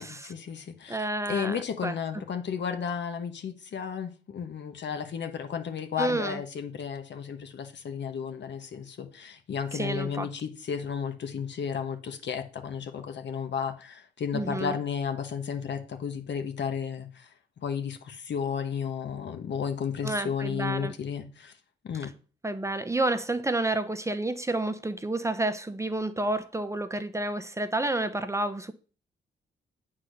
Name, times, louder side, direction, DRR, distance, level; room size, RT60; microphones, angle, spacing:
voice 1, 0.0-17.3 17.6-21.5 21.8-22.1, left 7 dB, 70° left, 1.2 m, -33 dB
voice 2, 0.9-2.2 6.0-6.4 9.7-10.3 14.3-14.8 20.0-20.9 22.4-28.7, right 2 dB, 15° right, 0.7 m, -30 dB
8.2 x 3.9 x 6.5 m
cardioid pair, 70°, 19 cm